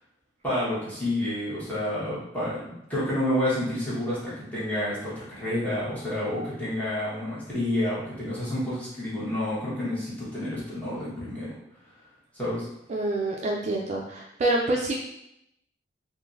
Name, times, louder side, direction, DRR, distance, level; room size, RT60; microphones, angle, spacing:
voice 1, 0.4-11.5 12.3-12.7, left 1 dB, 10° left, -10 dB, 1.3 m, -29 dB
voice 2, 12.9-15.0, right 2 dB, 40° right, -1 dB, 0.3 m, -27 dB
3.7 x 2.5 x 2.6 m, 0.82 s
head